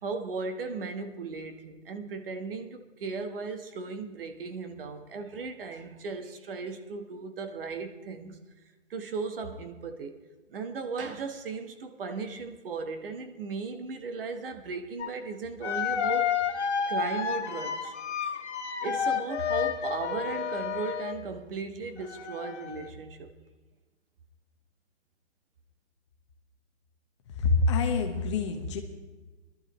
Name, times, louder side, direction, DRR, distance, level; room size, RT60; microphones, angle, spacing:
voice 1, 0.0-8.4 8.9-10.1 10.5-17.9 18.2-18.3 18.8-23.3, right 4 dB, 50° right, 7 dB, 1.2 m, -36 dB
sound 1, 15.0-15.1 15.6-21.2 22.0-22.9, left 7 dB, 65° left, 1.6 m, -31 dB
voice 2, 27.4-28.8, left 3 dB, 25° left, 4 dB, 0.9 m, -26 dB
20.5 x 12.0 x 3.0 m, 1.2 s
hypercardioid pair, 160°, 36 cm